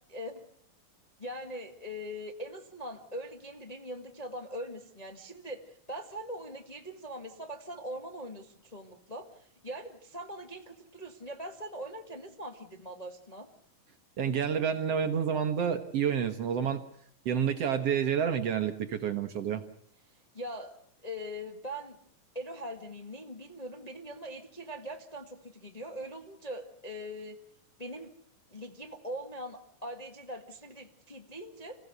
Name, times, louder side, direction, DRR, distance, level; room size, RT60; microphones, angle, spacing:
voice 1, 0.1-0.4 1.2-13.5 20.3-20.7 21.0-22.0 22.3-27.4 27.8-28.1 28.5-31.8, equal, 20° left, 4 dB, 1.1 m, -41 dB
voice 2, 14.2-16.8 17.3-19.6, right 8 dB, 60° right, 8 dB, 1.9 m, -29 dB
26.5 x 16.5 x 7.9 m, 0.66 s
omnidirectional pair, 3.6 m